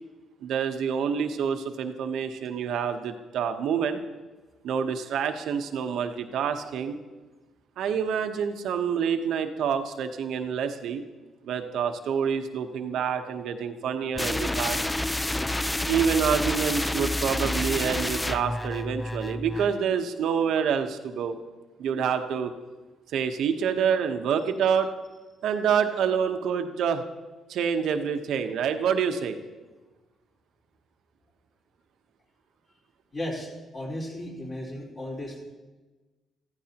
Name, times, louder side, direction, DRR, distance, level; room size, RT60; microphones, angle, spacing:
voice 1, 0.4-4.0 4.6-7.0 7.8-11.0 11.4-14.8 15.9-21.4 21.8-22.5 23.1-24.9 25.4-27.0 27.5-29.4, right 7 dB, 80° right, 7 dB, 1.0 m, -27 dB
sound 1, 14.2-19.8, left 1 dB, 10° left, 0.4 m, -29 dB
voice 2, 33.1-35.4, left 1 dB, 40° left, -3 dB, 4.3 m, -35 dB
14.5 x 14.5 x 3.0 m, 1.2 s
cardioid pair, 90°, 0 cm